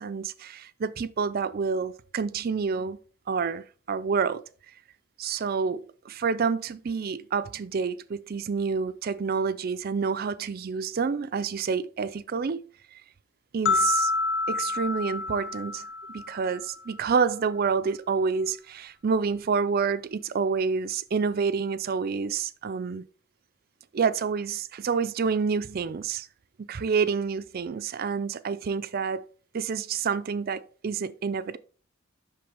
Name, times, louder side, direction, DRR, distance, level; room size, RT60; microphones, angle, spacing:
voice 1, 0.0-3.0 3.3-4.4 5.2-13.0 13.5-14.1 14.5-15.9 16.1-23.0 23.9-26.3 26.6-29.3 29.5-31.6, right 5 dB, 45° right, 0.4 m, -28 dB
sound 1, 13.7-16.8, left 3 dB, 80° left, 1.0 m, -28 dB
7.7 x 6.0 x 3.3 m
head